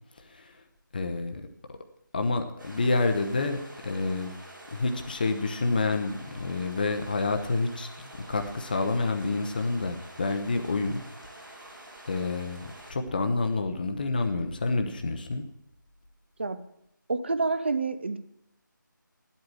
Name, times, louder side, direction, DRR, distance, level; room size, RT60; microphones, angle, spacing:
voice 1, 0.2-0.6 0.9-1.4 2.1-4.3 4.7-11.0 12.1-15.4, left 3 dB, 25° left, 6 dB, 0.8 m, -28 dB
sound 1, 2.6-12.9, right 1 dB, 75° right, 4.3 m, -48 dB
voice 2, 17.1-18.2, right 3 dB, 35° right, 12 dB, 0.6 m, -28 dB
10.0 x 8.2 x 8.5 m, 0.79 s
figure-of-eight pair, 160°, 11 cm